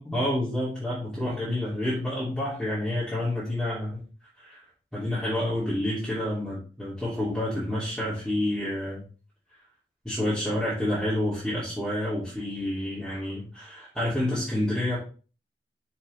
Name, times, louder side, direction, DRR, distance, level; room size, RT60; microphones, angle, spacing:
voice 1, 0.0-4.0 4.4-4.6 4.9-9.0 10.0-15.0, left 1 dB, ahead, -10 dB, 2.6 m, -29 dB
6.4 x 6.0 x 3.3 m, 0.37 s
head